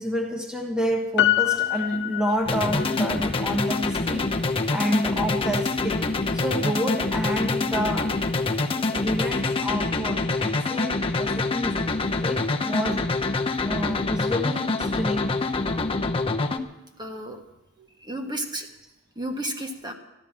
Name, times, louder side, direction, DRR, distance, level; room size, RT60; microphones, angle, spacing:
voice 1, 0.0-6.1 6.3-8.2 8.9-11.8 12.2-13.1 13.6-15.3, equal, 5° right, 1 dB, 1.3 m, -29 dB
Piano, 1.2-3.0 3.3-3.4, left 14 dB, 55° left, 0.5 m, -24 dB
sound 1, 2.4-16.6, left 3 dB, 25° left, 0.9 m, -26 dB
voice 2, 17.0-17.4 17.8-18.7 19.1-19.9, right 1 dB, 20° right, 3 dB, 1.5 m, -33 dB
14.0 x 12.0 x 7.4 m, 0.97 s
head